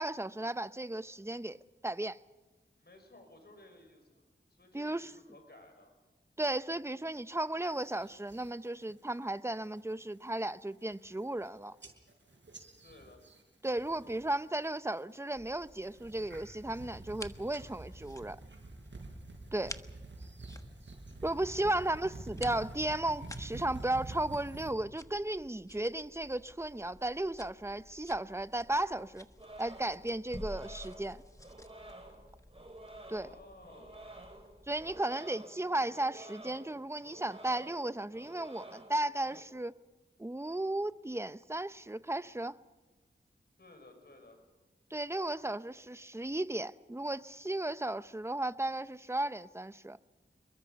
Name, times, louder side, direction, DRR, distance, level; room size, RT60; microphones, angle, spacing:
voice 1, 0.0-1.6 1.8-2.2 4.7-5.1 6.4-11.8 13.6-18.4 19.5-19.8 21.2-29.3 29.6-31.2 33.1-33.3 34.7-39.7 40.2-42.5 44.9-50.0, right 1 dB, 15° right, 0.8 m, -35 dB
voice 2, 2.8-4.2 4.5-5.9 12.8-13.2 21.4-22.2 33.2-34.4 43.6-44.4, left 2 dB, 60° left, 5.7 m, -57 dB
sound 1, 7.7-8.5 8.9-9.3 9.7-10.0 10.5-10.6 10.8-11.5 11.8-14.4 14.6-15.2 15.7-24.7, right 2 dB, 70° right, 5.8 m, -48 dB
sound 2, 15.3-35.0, left 1 dB, 15° left, 1.4 m, -52 dB
sound 3, 29.4-39.4, right 1 dB, 30° right, 5.5 m, -51 dB
27.5 x 22.5 x 5.3 m
wide cardioid pair, 45°, 19 cm